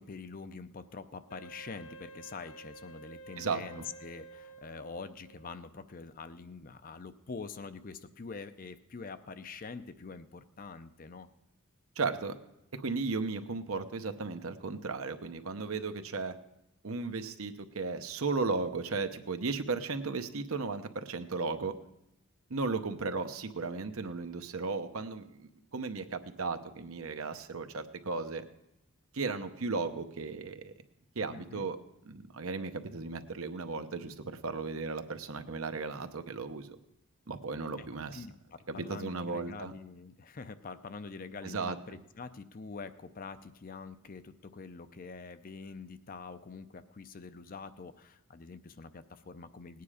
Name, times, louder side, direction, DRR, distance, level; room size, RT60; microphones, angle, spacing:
voice 1, 0.0-11.3 31.3-31.7 37.8-37.9 38.1-49.8, left 4 dB, 40° left, 11 dB, 0.5 m, -45 dB
Wind instrument woodwind instrument, 1.3-5.6, right 2 dB, 80° left, 0.8 m, -51 dB
voice 2, 3.4-3.8 12.0-12.3 12.7-16.3 16.8-21.7 22.5-28.4 29.1-30.7 31.1-31.8 32.0-34.1 34.4-36.8 37.3-38.2 38.7-39.7 41.4-41.8, right 4 dB, 75° right, 8 dB, 0.9 m, -35 dB
18.0 x 9.4 x 4.9 m, 0.88 s
head